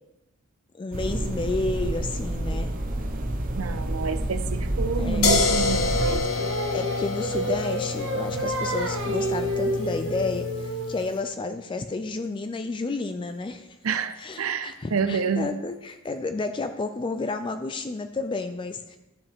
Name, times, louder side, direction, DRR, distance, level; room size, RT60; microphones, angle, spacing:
voice 1, 0.7-2.7 5.0-5.3 6.7-13.7 14.2-19.0, left 3 dB, 25° left, 8 dB, 0.3 m, -31 dB
sound 1, 0.9-6.2, right 1 dB, 40° right, 0.8 m, -28 dB
voice 2, 3.5-6.5 13.8-15.5, right 6 dB, 85° right, 10 dB, 0.6 m, -28 dB
sound 2, 5.2-11.0, left 3 dB, 85° left, 0.9 m, -27 dB
Singing, 6.0-11.2, right 1 dB, 65° right, 0.9 m, -30 dB
11.5 x 5.2 x 3.5 m, 0.96 s
head